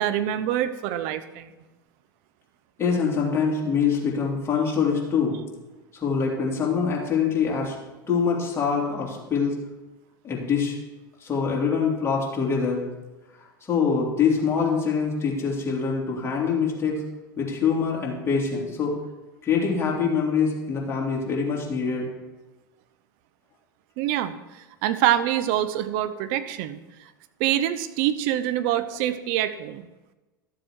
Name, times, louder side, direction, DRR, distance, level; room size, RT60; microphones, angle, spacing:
voice 1, 0.0-1.5 24.0-26.8 27.4-29.9, right 12 dB, 55° right, 12 dB, 0.8 m, -25 dB
voice 2, 2.8-5.3 6.0-7.7 8.1-9.5 10.2-10.8 11.2-12.8 13.4-17.0 17.4-18.9 19.4-22.1, left 6 dB, 20° left, -3 dB, 3.3 m, -24 dB
12.5 x 7.6 x 4.7 m, 1.1 s
hypercardioid pair, 85°, 11 cm